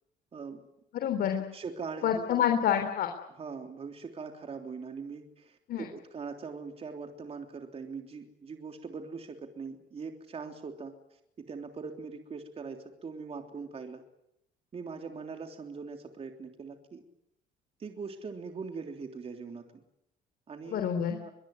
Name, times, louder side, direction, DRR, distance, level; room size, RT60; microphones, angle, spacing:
voice 1, 0.9-1.4 2.0-3.1 5.7-5.9 20.7-21.2, left 9 dB, 65° left, 5 dB, 3.6 m, -27 dB
voice 2, 1.5-2.6 3.3-14.0 14.7-17.0 17.8-19.8 20.5-20.8 21.2-21.3, right 5 dB, 35° right, 4 dB, 3.3 m, -41 dB
23.5 x 21.0 x 9.8 m, 0.79 s
cardioid pair, 110°, 17 cm